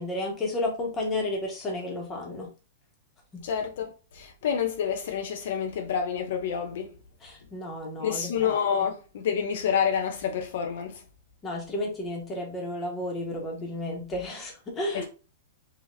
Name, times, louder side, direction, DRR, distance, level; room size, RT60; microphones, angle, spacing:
voice 1, 0.0-2.5 3.3-3.4 7.2-8.5 8.8-8.9 11.4-15.1, left 1 dB, 15° left, 1.3 m, -32 dB
voice 2, 3.4-6.9 8.0-11.0 14.9-15.1, left 7 dB, 60° left, 0.7 m, -28 dB
5.0 x 2.7 x 2.7 m
hypercardioid pair, 160°, 0 cm